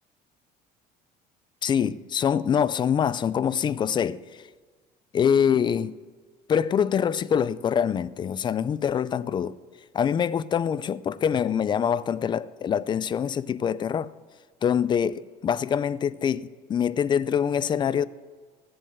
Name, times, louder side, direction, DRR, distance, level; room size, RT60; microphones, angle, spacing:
voice 1, 1.6-4.2 5.1-6.0 6.5-9.6 9.9-14.1 14.6-18.0, left 8 dB, 25° left, 0.4 m, -24 dB
16.5 x 7.8 x 7.9 m
cardioid pair, 155°, 18 cm